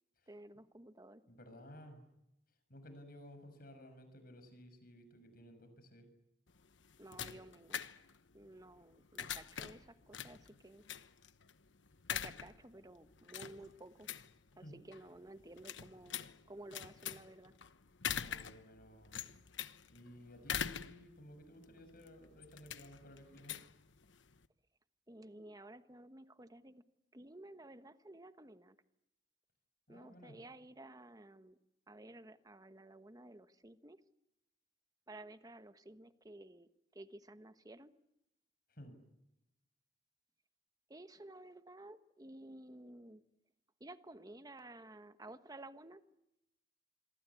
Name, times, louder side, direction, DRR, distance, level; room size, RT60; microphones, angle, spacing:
voice 1, 0.3-1.2 7.0-8.0 8.3-10.8 12.1-14.1 14.6-17.5 25.1-26.8 27.1-28.8 29.9-31.6 31.9-34.0 35.1-37.9 40.9-43.2 43.8-46.0, right 1 dB, 20° right, 11 dB, 1.2 m, -54 dB
voice 2, 1.3-2.0 2.7-6.1 14.6-14.8 18.0-19.2 19.9-23.6 29.9-30.4 38.7-39.0, equal, 50° left, 8 dB, 6.6 m, -55 dB
sound 1, 6.5-24.5, left 8 dB, 80° left, 1.1 m, -45 dB
27.0 x 23.0 x 8.4 m, 0.88 s
head